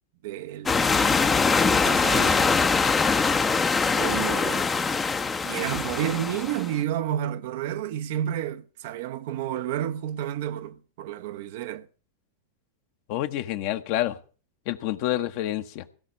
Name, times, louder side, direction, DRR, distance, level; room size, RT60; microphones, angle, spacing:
voice 1, 0.2-0.7 1.8-2.5 3.9-4.7 5.4-11.9, right 11 dB, 50° right, 0.8 m, -30 dB
sound 1, 0.7-6.7, left 4 dB, 15° left, 0.8 m, -23 dB
voice 2, 13.1-14.2 14.7-15.8, left 13 dB, 45° left, 1.0 m, -28 dB
16.0 x 6.0 x 8.5 m
figure-of-eight pair, 90°, 0 cm